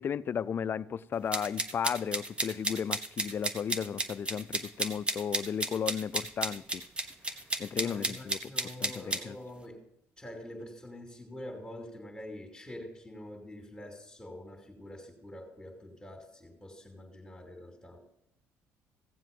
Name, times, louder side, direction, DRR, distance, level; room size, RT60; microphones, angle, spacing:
voice 1, 0.0-6.8 7.6-8.5 8.8-9.4, left 7 dB, 40° left, 0.5 m, -34 dB
sound 1, 1.3-9.2, right 2 dB, 20° right, 1.2 m, -33 dB
voice 2, 7.7-9.8 10.2-18.0, left 1 dB, 15° left, 2.6 m, -46 dB
16.0 x 7.6 x 5.3 m
cardioid pair, 100°, 5 cm